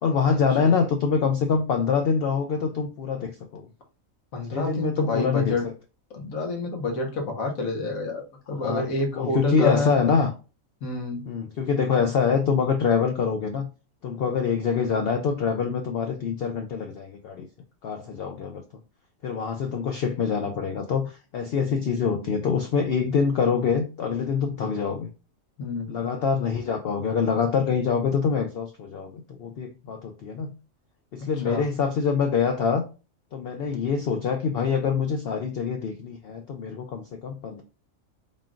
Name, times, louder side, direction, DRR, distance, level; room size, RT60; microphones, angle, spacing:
voice 1, 0.0-3.6 4.5-5.7 8.6-10.3 11.3-13.7 14.0-17.5 17.8-18.6 19.2-25.1 25.9-30.5 31.1-32.8 33.3-37.6, left 6 dB, 65° left, 5 dB, 0.6 m, -25 dB
voice 2, 4.3-5.6 6.1-10.0 10.8-11.2 25.6-26.1 31.4-31.6, left 2 dB, 85° left, 1 dB, 1.5 m, -28 dB
3.7 x 2.4 x 3.7 m, 0.32 s
omnidirectional pair, 1.4 m